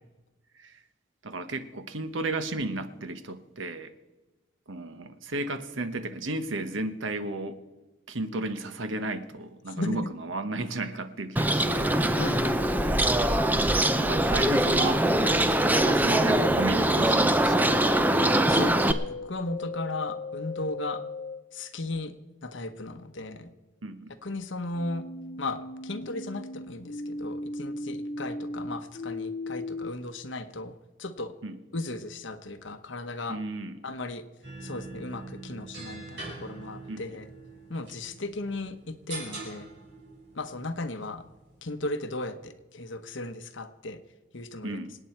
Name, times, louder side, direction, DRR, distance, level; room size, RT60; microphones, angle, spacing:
voice 1, 1.2-3.9 4.7-7.6 8.1-11.9 14.0-17.7 23.8-24.2 31.4-31.6 33.3-33.8 36.9-37.0 44.6-45.0, right 2 dB, 75° right, 10 dB, 1.1 m, -33 dB
voice 2, 9.8-10.1 12.2-12.9 18.5-21.0 21.5-22.1 22.4-23.5 24.2-25.1 25.4-31.3 31.7-33.4 33.8-34.2 34.6-37.3 37.7-39.7 40.3-41.2 41.6-44.0 44.3-44.9, left 2 dB, 70° left, 8 dB, 1.1 m, -36 dB
Bird, 11.4-18.9, right 1 dB, 10° right, 0.5 m, -23 dB
sound 1, 11.6-21.4 24.7-29.9, left 2 dB, 40° left, 0.6 m, -37 dB
sound 2, 34.4-41.6, right 2 dB, 55° right, 5.2 m, -43 dB
27.0 x 9.1 x 4.5 m, 1.2 s
head